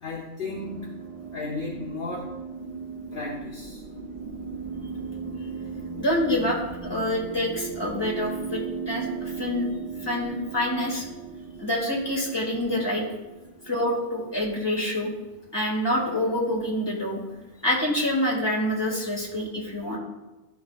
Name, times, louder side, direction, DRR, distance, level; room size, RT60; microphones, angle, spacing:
voice 1, 0.0-0.8 1.3-2.3 3.1-3.8, left 3 dB, 50° left, -3 dB, 1.0 m, -34 dB
sound 1, 0.5-15.1, right 5 dB, 55° right, 1.0 m, -37 dB
voice 2, 6.0-9.7 10.0-11.1 11.6-13.0 13.7-15.1 15.5-17.2 17.6-20.0, left 1 dB, 20° left, -3 dB, 1.9 m, -26 dB
12.0 x 5.8 x 2.4 m, 1.1 s
omnidirectional pair, 1.3 m